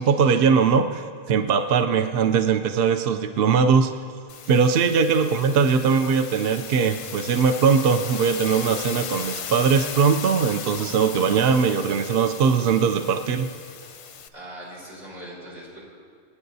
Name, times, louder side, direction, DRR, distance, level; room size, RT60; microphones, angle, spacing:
voice 1, 0.0-3.9 4.5-13.5, right 6 dB, 65° right, 7 dB, 0.7 m, -20 dB
sound 1, 4.3-14.3, left 7 dB, 90° left, 1.0 m, -37 dB
voice 2, 14.3-15.8, right 1 dB, 90° right, -7 dB, 4.6 m, -40 dB
28.5 x 9.6 x 2.7 m, 2.2 s
omnidirectional pair, 1.2 m